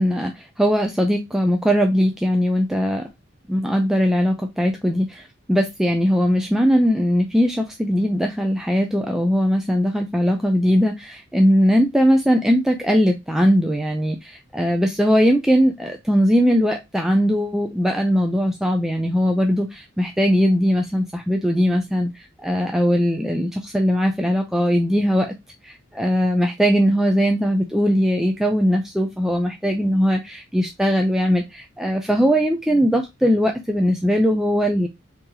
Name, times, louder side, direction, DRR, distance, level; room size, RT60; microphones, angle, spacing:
voice 1, 0.0-3.1 3.5-25.3 25.6-34.9, equal, ahead, 0.3 m, -20 dB
3.7 x 2.8 x 2.8 m
head